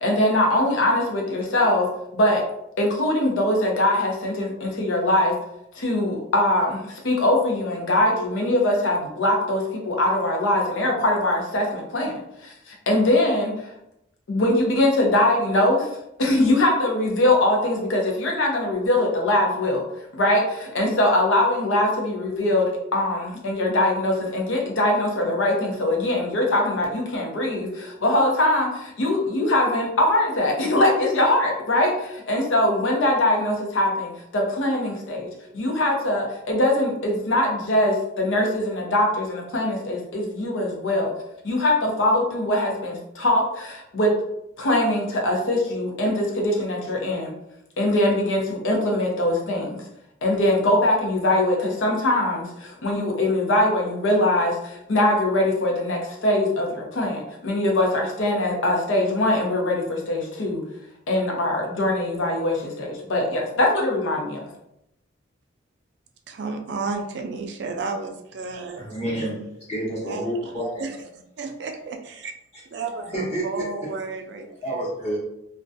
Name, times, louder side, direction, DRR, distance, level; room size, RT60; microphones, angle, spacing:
voice 1, 0.0-2.4 2.8-5.4 5.7-12.1 12.4-13.6 14.3-15.9 16.2-19.8 20.1-41.1 41.4-44.1 44.6-47.3 47.8-49.8 50.2-60.6 61.1-64.5, left 1 dB, 90° left, 0 dB, 0.6 m, -22 dB
voice 2, 66.3-68.9 70.0-70.3 70.8-71.1 71.4-72.3 72.7-74.9, right 4 dB, 60° right, 4 dB, 0.4 m, -32 dB
voice 3, 68.8-69.4 69.7-70.8 73.1-73.6 74.6-75.2, right 1 dB, 35° left, -6 dB, 0.7 m, -28 dB
2.4 x 2.2 x 2.6 m, 0.82 s
head